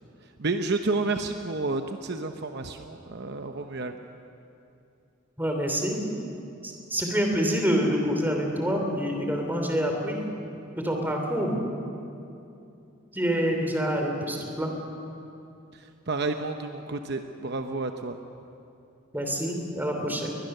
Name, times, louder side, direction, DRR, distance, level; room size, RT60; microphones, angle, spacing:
voice 1, 0.4-3.9 15.7-18.2, right 3 dB, 55° right, 6 dB, 0.9 m, -30 dB
voice 2, 5.4-6.0 6.6-10.2 10.8-11.6 13.1-14.7 19.1-20.3, equal, 10° right, 2 dB, 3.0 m, -27 dB
21.5 x 21.5 x 6.7 m, 2.7 s
head